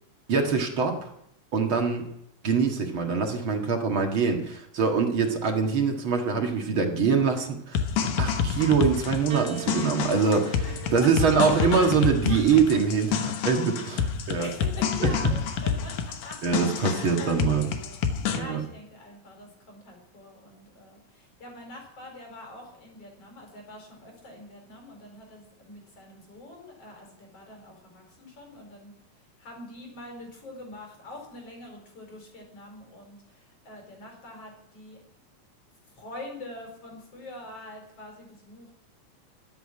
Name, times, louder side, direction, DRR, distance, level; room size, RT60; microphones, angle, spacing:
voice 1, 0.3-1.1 1.5-2.1 2.4-14.5 16.4-17.7 18.3-18.6, right 5 dB, 45° right, 3 dB, 2.3 m, -24 dB
sound 1, 7.7-18.4, left 7 dB, 85° left, 2.7 m, -28 dB
Piano, 9.3-13.8 14.8-15.6, right 8 dB, 65° right, 2.7 m, -44 dB
voice 2, 10.6-11.1 11.4-11.9 12.3-12.4 14.4-18.0 18.3-28.9 29.4-35.0 36.0-38.7, left 2 dB, 50° left, 2 dB, 5.5 m, -44 dB
14.0 x 8.6 x 9.9 m, 0.75 s
omnidirectional pair, 3.4 m